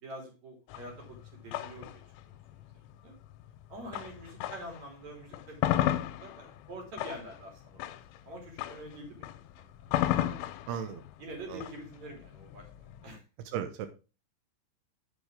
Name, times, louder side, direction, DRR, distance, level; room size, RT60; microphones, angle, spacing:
voice 1, 0.0-2.4 2.9-3.2 3.7-8.0 8.3-9.3 9.8-9.9 11.2-13.2, right 1 dB, 40° right, 1 dB, 3.7 m, -46 dB
sound 1, 0.7-4.8 5.2-13.2, left 13 dB, 90° left, 3.1 m, -34 dB
voice 2, 10.7-11.0 13.5-13.9, right 9 dB, 85° right, 9 dB, 2.3 m, -34 dB
9.7 x 6.5 x 3.6 m, 0.32 s
omnidirectional pair, 5.5 m